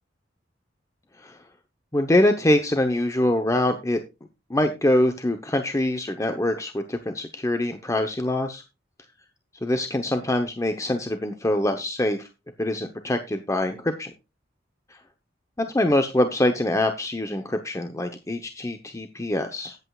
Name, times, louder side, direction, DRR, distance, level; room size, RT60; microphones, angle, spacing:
voice 1, 1.9-4.0 4.5-8.6 9.6-12.3 12.6-14.1 15.6-19.7, left 1 dB, 15° left, 6 dB, 0.9 m, -24 dB
16.0 x 8.1 x 2.4 m, 0.27 s
head